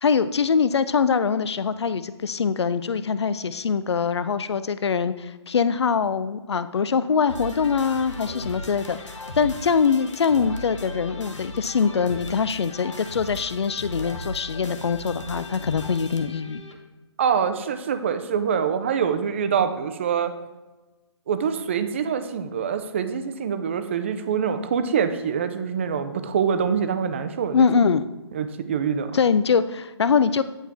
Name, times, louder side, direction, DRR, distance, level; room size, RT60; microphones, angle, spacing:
voice 1, 0.0-16.6 27.5-28.1 29.1-30.4, left 6 dB, 65° left, 14 dB, 0.5 m, -23 dB
sound 1, 7.3-16.8, left 1 dB, 85° left, 1.3 m, -37 dB
voice 2, 17.2-20.3 21.3-27.7 28.3-29.2, right 7 dB, 25° right, 9 dB, 0.4 m, -25 dB
9.8 x 4.5 x 3.4 m, 1.2 s
hypercardioid pair, 155°, 15 cm